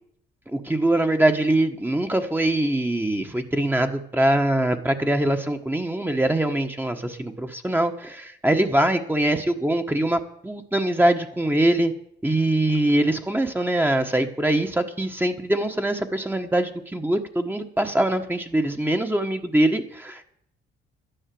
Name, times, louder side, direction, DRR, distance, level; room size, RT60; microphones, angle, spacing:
voice 1, 0.5-11.9 12.2-20.2, right 1 dB, 10° right, 5 dB, 1.4 m, -23 dB
12.0 x 10.0 x 7.8 m, 0.69 s
cardioid pair, 90°, 20 cm